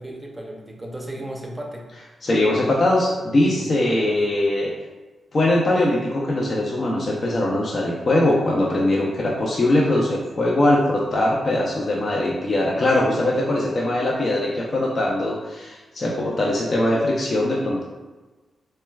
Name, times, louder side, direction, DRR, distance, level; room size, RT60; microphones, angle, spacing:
voice 1, 0.0-1.9 3.5-4.2, right 1 dB, 15° right, 0 dB, 0.6 m, -35 dB
voice 2, 2.2-4.7 5.3-17.8, left 1 dB, 45° left, -3 dB, 0.5 m, -21 dB
4.3 x 2.1 x 2.2 m, 1.2 s
cardioid pair, 75°, 0 cm